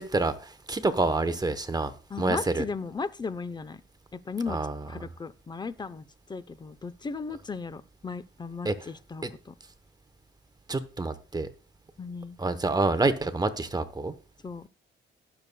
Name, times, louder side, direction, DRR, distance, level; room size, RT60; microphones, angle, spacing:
voice 1, 0.0-1.9 2.2-2.6 4.5-4.8 8.6-8.7 9.2-9.3 10.7-11.5 12.4-14.1, right 2 dB, 20° right, 0.9 m, -27 dB
voice 2, 2.1-3.8 4.1-4.6 4.9-6.0 6.3-9.5 12.0-12.4 14.4-14.7, left 4 dB, 20° left, 0.6 m, -36 dB
19.0 x 6.8 x 2.2 m
cardioid pair, 90°, 20 cm